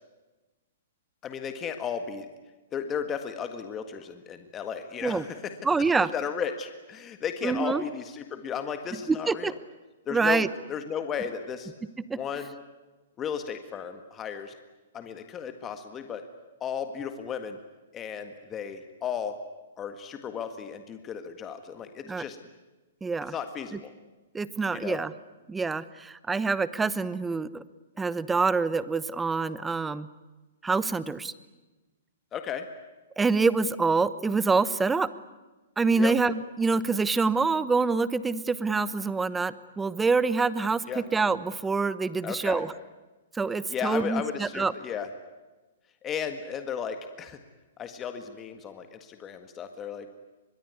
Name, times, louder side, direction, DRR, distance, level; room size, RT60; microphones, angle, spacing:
voice 1, 1.2-2.3 2.7-5.5 6.0-9.5 10.1-11.7 12.1-12.5 13.2-14.6 14.9-16.3 16.6-17.6 17.9-19.4 19.8-22.4 23.3-23.9 24.7-25.0 32.3-32.7 35.9-36.2 40.9-41.0 42.2-42.6 43.7-45.1 46.0-47.4 47.8-50.1, left 7 dB, 20° left, 8 dB, 1.7 m, -34 dB
voice 2, 5.6-6.1 7.4-7.8 9.1-9.5 10.1-10.5 12.1-12.2 22.1-22.2 23.0-23.3 24.3-25.1 25.5-27.6 28.0-30.1 30.6-31.3 33.2-35.1 35.8-40.8 41.1-42.7 43.3-44.7, right 4 dB, 10° right, 17 dB, 0.9 m, -26 dB
24.0 x 22.0 x 9.6 m, 1.2 s
hypercardioid pair, 145°, 0 cm